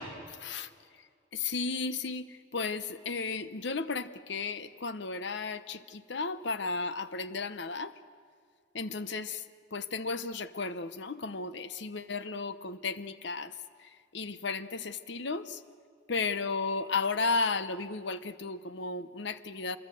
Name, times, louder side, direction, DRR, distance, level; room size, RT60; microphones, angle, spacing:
voice 1, 1.3-2.2 2.5-7.9 8.7-9.4 9.7-13.5 14.1-15.6 16.1-19.8, left 4 dB, 65° left, 13 dB, 0.9 m, -34 dB
26.5 x 21.5 x 7.9 m, 2.1 s
head